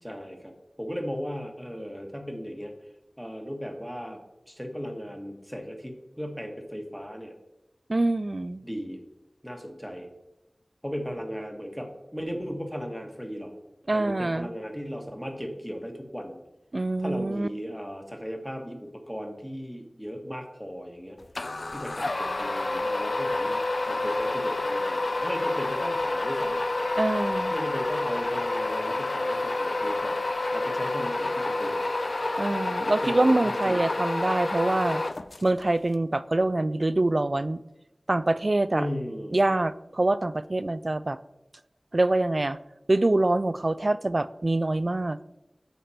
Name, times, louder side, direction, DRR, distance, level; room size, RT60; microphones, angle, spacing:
voice 1, 0.0-2.7 3.2-4.2 4.5-7.3 8.6-9.0 9.4-10.1 10.8-13.6 13.9-16.4 17.0-21.2 21.7-26.6 27.5-31.9 32.9-33.9 38.7-39.5, equal, 5° left, 3 dB, 1.5 m, -36 dB
voice 2, 7.9-8.6 13.9-14.5 16.7-17.5 27.0-27.5 32.4-35.0 35.4-37.6 38.1-38.9 39.3-41.2 41.9-42.6 42.9-45.2, right 2 dB, 50° right, 15 dB, 0.4 m, -25 dB
sound 1, 21.3-35.6, left 2 dB, 60° left, 0.4 m, -28 dB
8.4 x 5.8 x 4.3 m, 0.90 s
wide cardioid pair, 50°, 0 cm